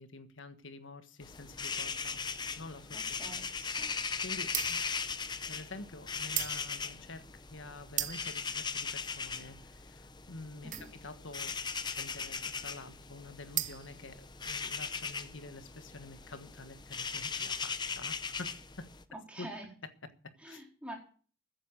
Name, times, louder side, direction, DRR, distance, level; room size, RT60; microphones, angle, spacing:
voice 1, 0.0-2.2 2.6-3.3 4.2-4.8 5.5-18.9 19.4-19.5 20.4-20.6, left 2 dB, 70° left, 10 dB, 1.5 m, -48 dB
sound 1, 1.2-19.0, left 5 dB, 20° left, 0.7 m, -39 dB
voice 2, 3.2-3.9 10.6-10.9 19.1-19.7 20.4-21.0, right 1 dB, 5° right, 0 dB, 4.0 m, -46 dB
sound 2, 4.4-14.8, right 12 dB, 40° right, 0.9 m, -40 dB
14.5 x 9.8 x 6.6 m, 0.42 s
head